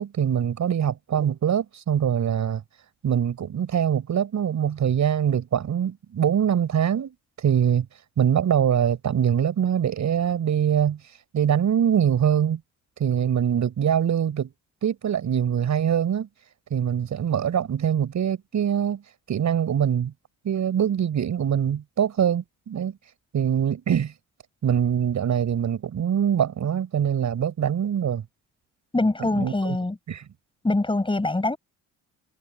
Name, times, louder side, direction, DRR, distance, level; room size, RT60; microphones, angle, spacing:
voice 1, 0.0-2.6 3.0-7.9 8.2-11.0 11.3-12.6 13.0-14.5 14.8-16.3 16.7-19.0 19.3-20.1 20.4-23.0 23.3-24.1 24.6-28.2 29.2-29.8 30.1-30.2, right 9 dB, 55° right, 6.6 m, -23 dB
voice 2, 28.9-30.0 30.6-31.6, left 2 dB, 15° left, 7.7 m, -23 dB
cardioid pair, 95°, 34 cm